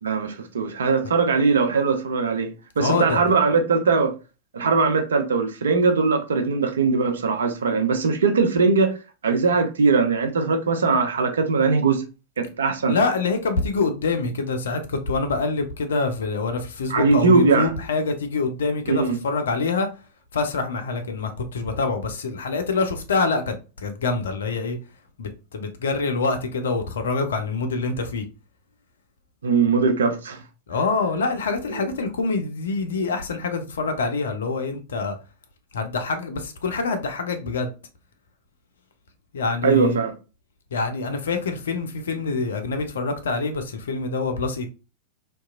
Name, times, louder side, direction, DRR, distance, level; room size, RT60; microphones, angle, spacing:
voice 1, 0.0-4.1 4.5-9.0 9.2-12.0 12.4-13.0 16.9-17.7 18.9-19.2 29.4-30.4 31.7-31.9 39.6-40.1, right 4 dB, 65° right, 0.5 m, -20 dB
voice 2, 2.8-3.2 12.9-19.9 20.3-24.8 25.2-28.3 30.7-35.2 35.7-37.7 39.3-40.0 40.7-44.7, left 3 dB, 65° left, 0.5 m, -25 dB
2.8 x 2.3 x 2.3 m
figure-of-eight pair, 90°, 0 cm